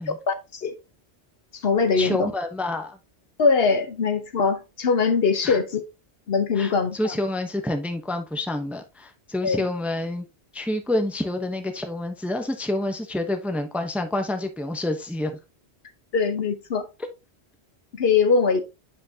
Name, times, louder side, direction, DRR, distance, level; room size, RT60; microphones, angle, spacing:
voice 1, 0.3-0.7 1.5-2.3 3.4-5.8 6.3-7.1 9.4-9.6 16.1-16.9 17.9-18.6, left 5 dB, 65° left, 1.1 m, -22 dB
voice 2, 2.0-3.0 5.4-5.6 6.6-10.2 10.5-15.4, left 1 dB, ahead, 0.7 m, -28 dB
8.4 x 5.3 x 2.7 m
omnidirectional pair, 1.1 m